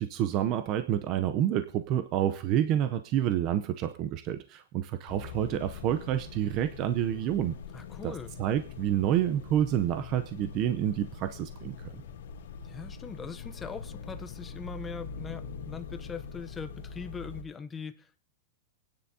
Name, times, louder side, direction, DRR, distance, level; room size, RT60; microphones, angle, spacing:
voice 1, 0.0-7.5 8.0-11.9, right 11 dB, 25° right, 0.6 m, -28 dB
sound 1, 5.1-17.4, left 6 dB, 85° left, 2.4 m, -43 dB
voice 2, 7.7-8.3 12.6-18.2, left 5 dB, 10° left, 0.7 m, -41 dB
26.5 x 9.6 x 2.8 m
supercardioid pair, 180°, 0 cm